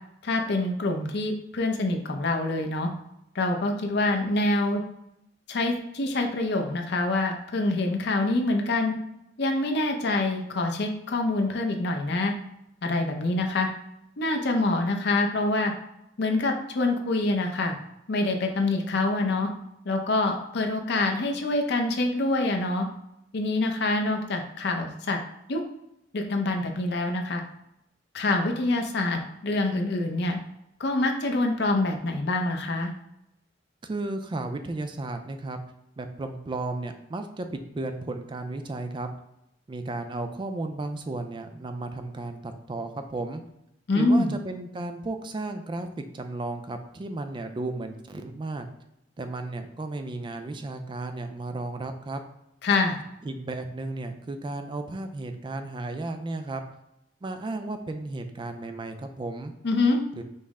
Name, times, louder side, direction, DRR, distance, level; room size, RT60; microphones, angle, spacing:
voice 1, 0.2-2.9 3.3-4.8 5.5-8.9 9.4-12.3 12.8-13.7 14.2-15.7 16.2-17.8 18.1-19.5 19.8-22.9 23.3-25.2 25.5-25.6 26.1-27.4 28.1-30.4 30.8-32.9 43.9-44.3 52.6-53.0 59.6-60.0, left 2 dB, 60° left, 4 dB, 0.6 m, -25 dB
voice 2, 33.8-35.6 36.0-39.1 39.7-43.4 43.9-45.9 46.1-48.7 49.2-52.2 53.2-56.6 57.2-59.5 60.2-60.3, right 2 dB, 25° right, 7 dB, 0.3 m, -34 dB
5.4 x 2.0 x 3.5 m, 0.82 s
head